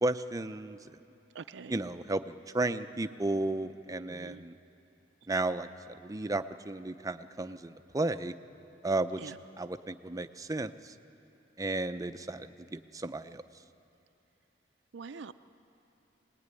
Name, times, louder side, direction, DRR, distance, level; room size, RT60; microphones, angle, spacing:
voice 1, 0.0-0.8 1.7-4.5 5.3-8.3 8.8-9.2 9.6-10.9 11.6-13.4, right 2 dB, 20° right, 10 dB, 0.6 m, -33 dB
voice 2, 1.3-1.8 4.1-4.4 9.2-9.4 14.9-15.3, right 5 dB, 75° right, 9 dB, 0.5 m, -44 dB
23.5 x 19.5 x 9.7 m, 2.9 s
head